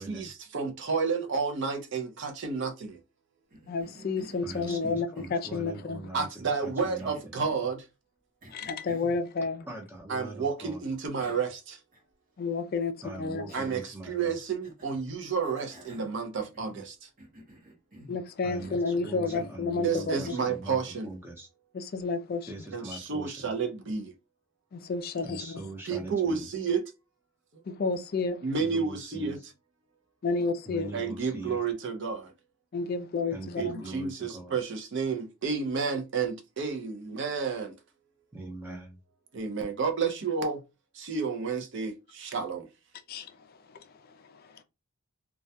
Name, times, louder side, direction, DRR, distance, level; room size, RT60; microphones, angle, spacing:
voice 1, 0.0-3.0 6.1-7.9 10.1-11.8 13.5-17.1 19.8-21.2 22.7-24.1 25.8-26.8 27.5-27.6 28.4-29.4 30.9-32.3 33.6-37.8 39.3-40.6 40.9-42.7, right 5 dB, 55° right, 0.5 m, -31 dB
Cough, 3.5-5.7 6.5-7.7 8.4-9.2 10.6-10.7 11.2-11.6 11.9-12.0 13.5-14.0 14.6-15.0 15.4-16.9 17.2-18.2 18.6-18.9 19.3-19.6 20.2-20.7, right 1 dB, 40° right, 0.9 m, -50 dB
voice 2, 3.7-6.1 8.5-9.7 12.4-12.9 13.2-13.5 18.1-20.3 21.7-22.5 24.7-25.6 27.7-28.4 30.2-30.9 32.7-33.8 43.1-44.6, left 4 dB, 45° left, 0.3 m, -31 dB
voice 3, 4.4-7.3 9.7-10.8 13.0-14.3 18.4-21.5 22.5-23.5 25.2-26.5 28.6-29.4 30.7-31.6 33.3-34.5 38.3-39.0, right 2 dB, 10° right, 0.6 m, -42 dB
2.2 x 2.1 x 2.7 m
head